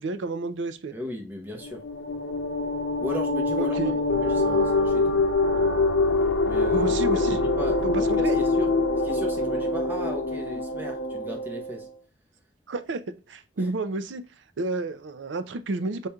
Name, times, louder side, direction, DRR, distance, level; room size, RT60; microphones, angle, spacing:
voice 1, 0.0-0.9 3.6-4.0 6.7-7.5 7.8-8.4 12.7-14.2 14.6-16.1, right 3 dB, 90° right, 0.5 m, -30 dB
voice 2, 0.9-1.8 3.0-5.2 5.5-5.8 6.4-8.7 9.0-11.9 13.6-13.7, left 1 dB, 10° right, 0.8 m, -36 dB
sound 1, 1.6-11.9, left 2 dB, 90° left, 0.7 m, -24 dB
5.0 x 4.1 x 2.3 m
head